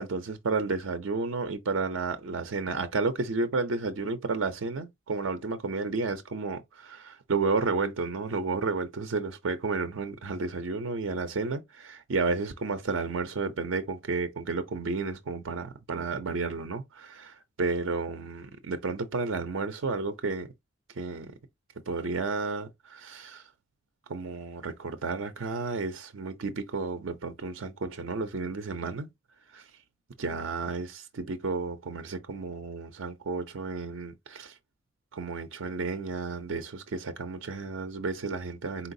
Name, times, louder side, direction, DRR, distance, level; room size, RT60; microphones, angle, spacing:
voice 1, 0.0-20.5 21.0-21.3 21.9-23.5 24.1-29.1 29.5-29.6 30.2-34.6 35.1-38.9, right 4 dB, 70° right, 0.5 m, -32 dB
4.3 x 3.9 x 2.6 m
head